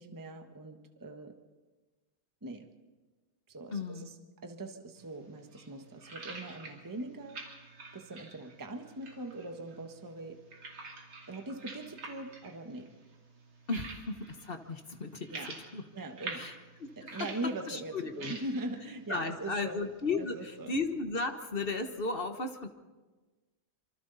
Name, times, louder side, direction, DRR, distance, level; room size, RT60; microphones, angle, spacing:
voice 1, 0.0-1.4 2.4-2.7 3.5-4.1 4.4-7.4 7.9-10.4 11.3-12.9 15.3-15.5 15.9-16.5 17.0-19.8 20.2-20.7, right 2 dB, 10° right, 5 dB, 1.0 m, -41 dB
voice 2, 3.7-4.1 13.7-15.3 15.7-15.8 16.4-16.5 16.8-17.3 17.7-18.4 19.1-22.7, left 3 dB, 35° left, 6 dB, 1.0 m, -35 dB
sound 1, 5.0-20.7, right 3 dB, 75° right, 3.7 m, -49 dB
26.0 x 24.5 x 4.1 m, 1.3 s
omnidirectional pair, 2.2 m